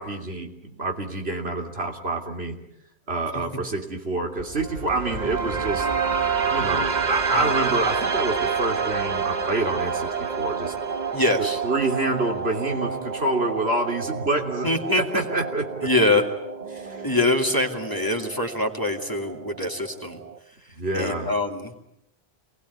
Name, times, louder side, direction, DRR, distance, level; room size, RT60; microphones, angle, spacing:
voice 1, 0.0-2.6 3.1-5.9 6.5-10.7 11.4-15.9 16.6-17.3 20.8-21.3, right 2 dB, 70° right, 3 dB, 3.5 m, -27 dB
sound 1, 4.4-20.4, right 5 dB, 45° right, 1.3 m, -29 dB
voice 2, 11.1-11.6 14.6-15.2 15.8-16.2 17.0-20.2 20.9-21.7, left 2 dB, 20° left, 3 dB, 2.8 m, -24 dB
28.0 x 21.0 x 9.6 m, 0.84 s
omnidirectional pair, 1.1 m